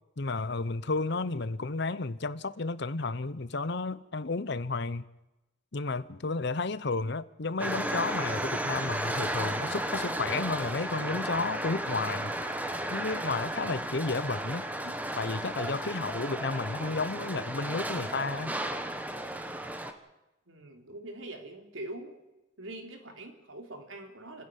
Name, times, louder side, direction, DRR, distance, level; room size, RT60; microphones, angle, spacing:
voice 1, 0.2-5.0 5.7-12.3 12.9-18.6, left 3 dB, 60° left, 0.8 m, -32 dB
sound 1, 7.6-19.9, right 1 dB, 10° right, 1.3 m, -34 dB
voice 2, 20.5-22.1 22.6-24.4, right 1 dB, 85° right, 3.6 m, -43 dB
29.5 x 10.5 x 9.4 m
head